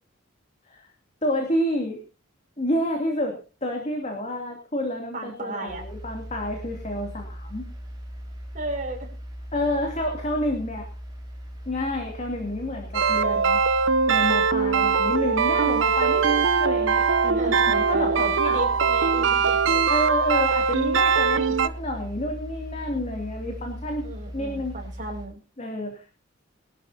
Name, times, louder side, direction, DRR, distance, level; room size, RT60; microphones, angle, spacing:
voice 1, 1.2-2.0 2.6-7.7 9.5-10.9 11.7-13.6 14.1-18.8 19.9-24.1 24.3-24.7 25.6-26.0, left 1 dB, 35° left, 2 dB, 2.7 m, -29 dB
voice 2, 5.1-5.8 8.5-9.1 17.3-19.8 24.0-25.3, right 2 dB, 40° right, 0 dB, 5.7 m, -33 dB
sound 1, 5.7-25.2, equal, 20° right, 4.7 m, -38 dB
sound 2, 12.9-21.7, right 5 dB, 70° right, 0.7 m, -21 dB
22.5 x 12.0 x 2.8 m, 0.33 s
head